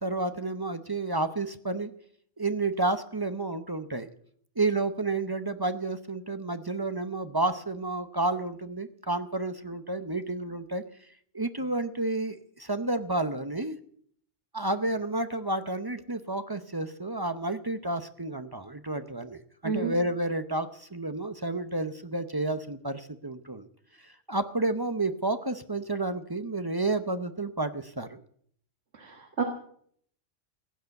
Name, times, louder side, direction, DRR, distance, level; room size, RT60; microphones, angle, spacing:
voice 1, 0.0-1.9 2.4-4.1 4.6-10.8 11.3-13.8 14.5-23.7 24.0-28.2, right 2 dB, 25° right, 10 dB, 0.6 m, -30 dB
voice 2, 28.9-29.4, right 5 dB, 60° right, 4 dB, 1.8 m, -30 dB
16.0 x 9.4 x 8.1 m, 0.63 s
omnidirectional pair, 1.3 m